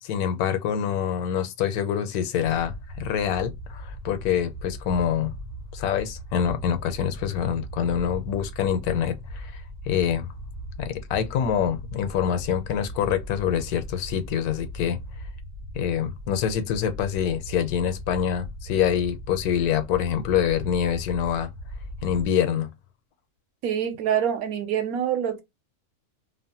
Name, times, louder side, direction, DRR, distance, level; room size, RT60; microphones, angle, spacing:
voice 1, 0.0-5.3 5.7-9.6 9.9-10.3 10.8-15.0 15.7-21.5 22.0-22.7, left 8 dB, 85° left, 1.1 m, -25 dB
sound 1, 2.4-22.3, equal, 50° right, 0.6 m, -39 dB
voice 2, 23.6-25.4, right 9 dB, 80° right, 1.1 m, -25 dB
2.8 x 2.1 x 2.7 m
omnidirectional pair, 1.6 m